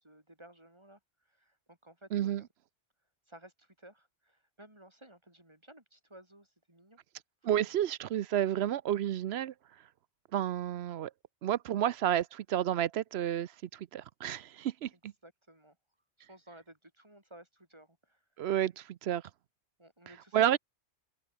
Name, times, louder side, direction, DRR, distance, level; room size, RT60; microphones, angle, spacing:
voice 1, 0.0-2.5 3.3-7.0 7.5-7.7 14.9-15.8 16.2-18.2 19.8-20.6, right 1 dB, 25° right, 3.8 m, -56 dB
voice 2, 2.1-2.4 7.4-9.5 10.3-11.1 11.4-15.1 18.4-19.2 20.3-20.6, right 11 dB, 70° right, 0.9 m, -31 dB
omnidirectional pair, 1.2 m